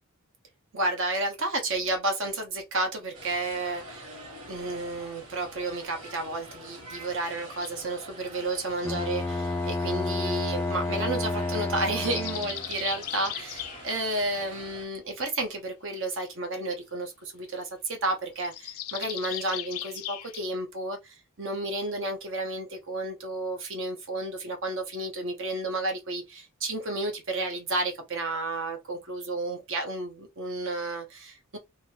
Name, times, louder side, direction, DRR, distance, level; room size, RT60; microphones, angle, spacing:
voice 1, 0.7-4.1 4.5-31.6, right 2 dB, 60° right, 1.1 m, -32 dB
sound 1, 3.1-14.8, right 1 dB, 85° right, 1.9 m, -46 dB
sound 2, 7.5-7.7 9.3-10.5 11.7-14.0 18.4-20.4, left 13 dB, 80° left, 0.4 m, -38 dB
Bowed string instrument, 8.8-12.8, left 2 dB, 10° left, 0.3 m, -30 dB
2.9 x 2.9 x 2.9 m
head